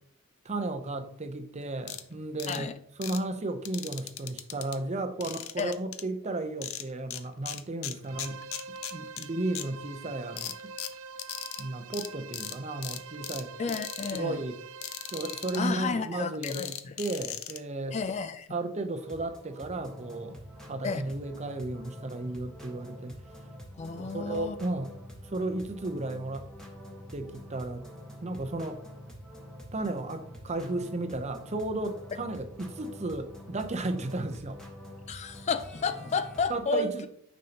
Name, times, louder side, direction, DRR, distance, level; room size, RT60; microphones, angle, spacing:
voice 1, 0.4-2.7 3.0-8.4 8.7-10.7 11.6-13.5 14.1-14.6 15.1-18.0 18.5-23.2 23.9-24.9 25.2-26.5 27.1-27.9 28.2-28.8 29.7-34.6 36.5-37.1, right 2 dB, 30° right, 0.7 m, -34 dB
sound 1, 1.9-2.0 2.4-2.6 3.0-3.2 3.6-4.8 5.2-6.0 6.6-7.2 7.5-9.3 9.5-9.6 10.4-11.6 11.9-12.1 12.3-12.6 12.8-13.4 13.7-14.2 14.8-15.6 16.4-17.6, left 11 dB, 80° left, 0.6 m, -38 dB
sound 2, 8.0-15.9, right 5 dB, 85° right, 0.4 m, -45 dB
voice 2, 13.6-14.4 15.5-16.9 17.9-18.5 20.8-21.1 23.8-24.6 35.1-37.1, left 4 dB, 30° left, 0.3 m, -32 dB
sound 3, 19.0-36.4, equal, 5° left, 1.3 m, -46 dB
9.7 x 5.3 x 2.9 m
head